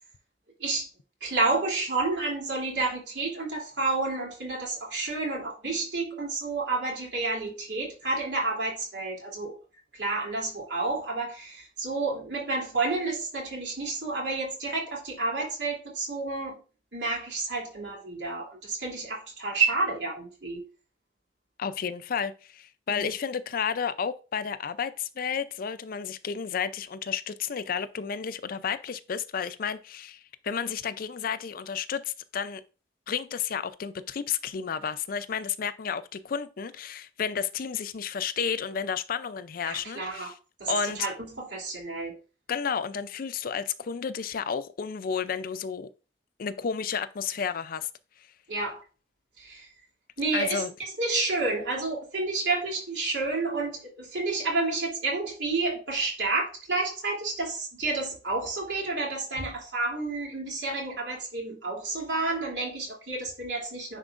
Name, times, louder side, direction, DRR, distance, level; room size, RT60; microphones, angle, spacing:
voice 1, 1.2-9.5 10.0-16.6 16.9-20.6 22.9-23.1 39.7-40.3 40.6-42.1 48.5-48.8 49.4-49.7 50.2-64.0, right 3 dB, 80° right, 2.9 m, -30 dB
voice 2, 21.6-32.6 33.1-40.4 40.7-41.1 42.5-45.9 46.4-47.9 50.3-50.7, left 7 dB, 55° left, 0.4 m, -32 dB
9.8 x 4.5 x 2.5 m
head